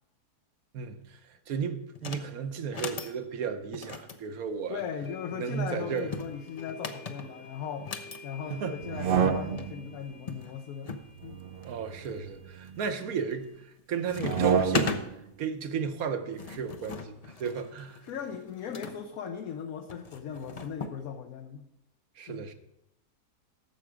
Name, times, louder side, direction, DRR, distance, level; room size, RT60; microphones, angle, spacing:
voice 1, 0.7-4.8 5.4-6.1 8.5-8.7 11.6-13.5 13.9-15.0 15.4-18.0 22.2-22.5, right 6 dB, 70° right, 1.3 m, -34 dB
sound 1, 1.9-2.3 2.6-3.1 3.7-5.1 5.9-8.2 9.3-9.4 9.6-9.7 10.3-11.1 11.6-12.1 12.7-13.1 13.4-13.8 14.1-15.0 16.0-19.0 19.9-21.0, left 4 dB, 45° left, 0.5 m, -37 dB
voice 2, 4.7-7.9 8.2-11.4 18.0-21.7 22.3-22.5, left 7 dB, 70° left, 1.1 m, -38 dB
sound 2, 4.8-13.6, left 2 dB, 85° left, 2.2 m, -52 dB
sound 3, 8.8-9.9 11.2-12.8 14.1-15.1, right 7 dB, 55° right, 0.6 m, -29 dB
11.5 x 7.1 x 4.9 m
omnidirectional pair, 1.6 m